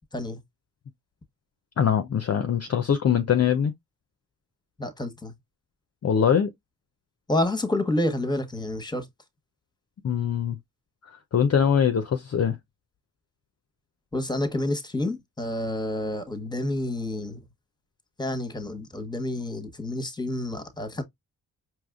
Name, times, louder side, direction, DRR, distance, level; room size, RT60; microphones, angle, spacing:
voice 1, 1.8-3.7 6.0-6.5 10.0-10.6 11.3-12.6, left 8 dB, 35° left, 0.6 m, -22 dB
voice 2, 4.8-5.3 7.3-9.0 14.1-17.4 18.2-21.0, left 1 dB, 10° left, 1.1 m, -29 dB
4.8 x 3.0 x 2.3 m
supercardioid pair, 40°, 43 cm